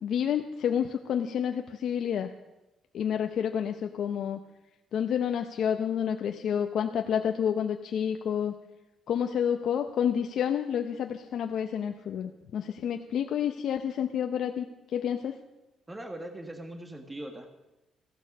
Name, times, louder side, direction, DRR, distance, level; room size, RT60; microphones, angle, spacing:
voice 1, 0.0-2.3 2.9-4.4 4.9-8.5 9.1-14.7 14.9-15.4, left 8 dB, 70° left, 5 dB, 0.7 m, -29 dB
voice 2, 15.9-17.5, right 1 dB, 15° right, 5 dB, 1.5 m, -40 dB
15.0 x 13.0 x 5.4 m, 0.97 s
cardioid pair, 90°, 0 cm